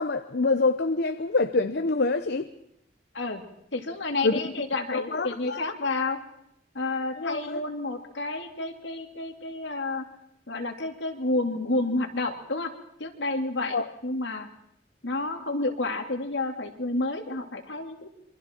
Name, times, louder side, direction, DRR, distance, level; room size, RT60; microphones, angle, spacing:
voice 1, 0.0-2.5 4.2-4.4 4.9-5.6 7.2-7.6 13.7-13.9, left 3 dB, 60° left, 8 dB, 0.8 m, -26 dB
voice 2, 3.7-6.2 6.7-10.1 10.5-12.7 13.0-13.8 14.0-14.5 15.0-18.1, left 2 dB, 75° left, 4 dB, 2.5 m, -30 dB
27.0 x 24.0 x 4.5 m, 0.75 s
head